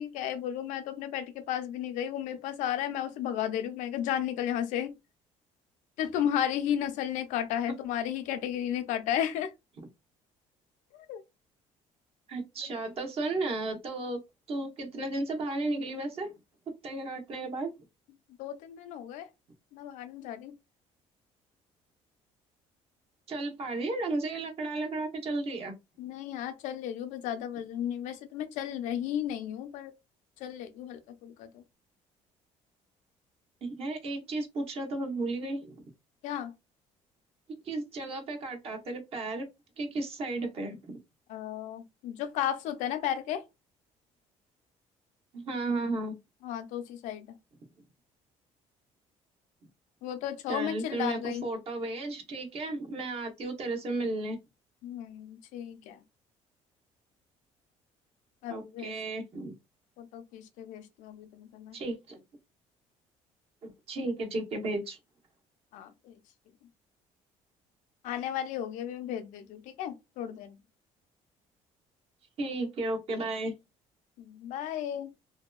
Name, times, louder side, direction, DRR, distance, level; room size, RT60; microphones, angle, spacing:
voice 1, 0.0-4.9 6.0-9.5 11.1-11.2 18.4-19.3 19.7-20.5 26.0-29.9 30.4-31.6 36.2-36.5 41.3-43.4 46.4-47.3 50.0-51.4 54.8-56.0 58.4-58.9 60.0-61.8 65.7-66.1 68.0-70.6 74.2-75.1, left 10 dB, 80° left, 0.5 m, -34 dB
voice 2, 12.3-14.2 14.5-16.3 16.8-17.7 23.3-25.7 33.6-35.7 37.5-39.5 39.8-41.0 45.3-46.1 50.5-54.4 58.5-59.5 61.7-62.2 63.6-65.0 72.4-73.5, right 2 dB, 50° right, 0.9 m, -34 dB
2.7 x 2.2 x 2.2 m
cardioid pair, 105°, 13 cm